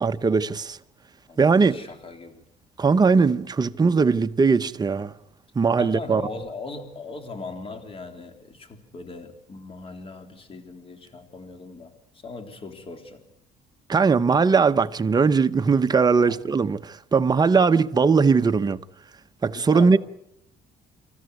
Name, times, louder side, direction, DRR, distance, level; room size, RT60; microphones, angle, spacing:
voice 1, 0.0-0.8 1.4-1.8 2.8-5.1 5.5-6.2 13.9-18.8 19.4-20.0, right 5 dB, 25° right, 0.8 m, -20 dB
voice 2, 1.7-2.5 5.8-13.2 16.2-16.4 19.5-20.0, left 3 dB, 35° left, 3.7 m, -39 dB
27.5 x 14.0 x 9.5 m
cardioid pair, 110°, 17 cm